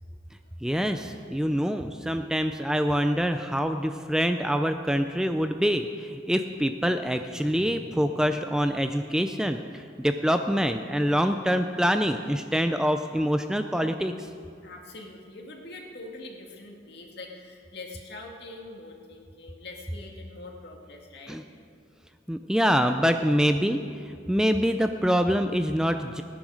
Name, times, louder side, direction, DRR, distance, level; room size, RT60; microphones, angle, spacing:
voice 1, 0.6-14.1 21.3-21.4 22.3-26.2, equal, 5° right, 7 dB, 0.4 m, -25 dB
voice 2, 14.6-21.4, left 2 dB, 60° left, 0 dB, 2.2 m, -43 dB
17.5 x 10.0 x 6.4 m, 2.3 s
head